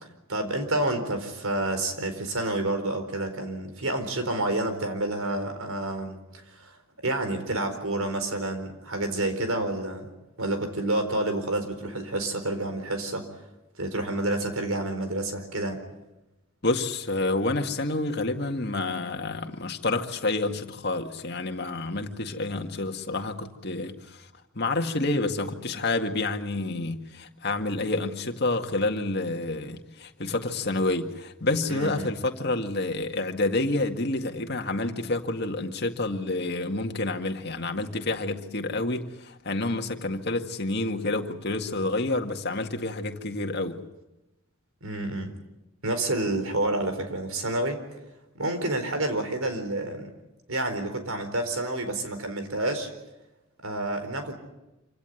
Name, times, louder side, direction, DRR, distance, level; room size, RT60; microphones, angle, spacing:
voice 1, 0.3-6.2 6.5-6.8 7.0-10.1 10.4-13.3 13.8-15.8 31.7-32.1 44.8-45.3 45.8-47.8 48.3-50.1 50.5-52.9 53.6-54.4, right 2 dB, 75° right, 4.3 m, -29 dB
voice 2, 16.6-24.3 24.6-43.8, left 2 dB, 50° left, 1.9 m, -29 dB
26.5 x 17.0 x 9.7 m
head